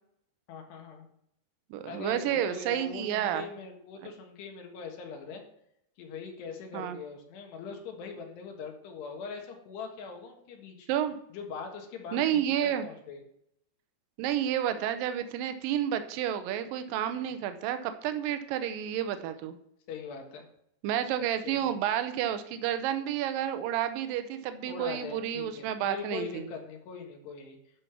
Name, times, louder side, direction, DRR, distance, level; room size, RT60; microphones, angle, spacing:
voice 1, 0.5-1.1 1.9-5.4 6.0-10.9 11.3-13.2 19.9-20.5 21.5-21.7 24.7-27.6, left 5 dB, 75° left, 2 dB, 3.6 m, -42 dB
voice 2, 1.7-3.5 6.7-7.0 10.9-11.2 12.1-12.9 14.2-19.6 20.8-26.5, right 10 dB, 85° right, 10 dB, 2.0 m, -30 dB
12.0 x 5.5 x 5.9 m, 0.74 s
omnidirectional pair, 4.9 m